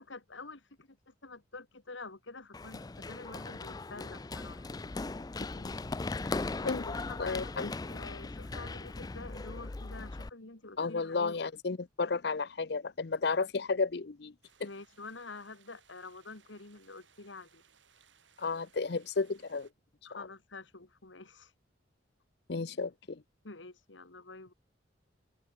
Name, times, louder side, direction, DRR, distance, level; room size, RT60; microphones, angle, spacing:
voice 1, 0.0-4.7 6.6-11.4 14.6-17.6 20.1-21.5 23.4-24.5, left 3 dB, 85° left, 2.4 m, -48 dB
Run, 2.5-10.3, left 3 dB, 20° left, 0.4 m, -39 dB
voice 2, 6.6-7.7 10.8-14.3 14.6-14.7 18.4-19.7 20.1-20.3 22.5-23.2, left 4 dB, 60° left, 0.6 m, -33 dB
sound 1, 14.4-19.7, right 7 dB, 85° right, 8.0 m, -65 dB
open air
head